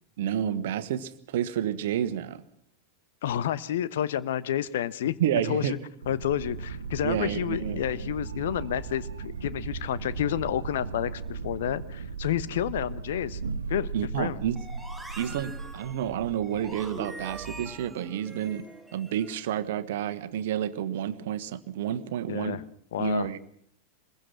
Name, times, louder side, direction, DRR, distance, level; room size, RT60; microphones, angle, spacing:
voice 1, 0.2-2.4 5.2-5.8 7.0-7.8 13.9-14.6 15.2-18.7 18.9-22.6 23.0-23.4, right 10 dB, 55° right, 13 dB, 1.4 m, -30 dB
voice 2, 3.2-5.2 5.5-5.8 6.1-13.4 13.7-13.9 14.2-14.4 22.3-22.6 22.9-23.3, left 11 dB, 60° left, 17 dB, 1.0 m, -30 dB
sound 1, 6.0-17.8, right 5 dB, 70° right, 1.0 m, -37 dB
sound 2, 14.5-19.5, right 1 dB, ahead, 4.6 m, -44 dB
25.0 x 22.0 x 6.0 m, 0.64 s
figure-of-eight pair, 90°, 0 cm